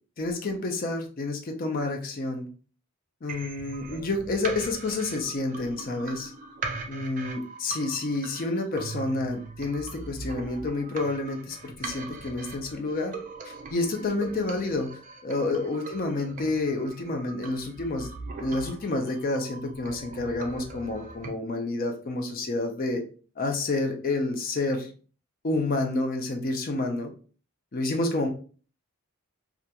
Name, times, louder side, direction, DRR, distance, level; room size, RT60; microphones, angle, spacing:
voice 1, 0.2-2.5 3.2-6.3 6.9-13.1 13.4-18.1 18.4-23.0 23.4-24.9 25.4-27.1 27.7-28.3, left 2 dB, 40° left, 4 dB, 0.4 m, -29 dB
sound 1, 3.3-21.3, right 3 dB, 35° right, 0.3 m, -41 dB
2.8 x 2.4 x 2.2 m, 0.40 s
head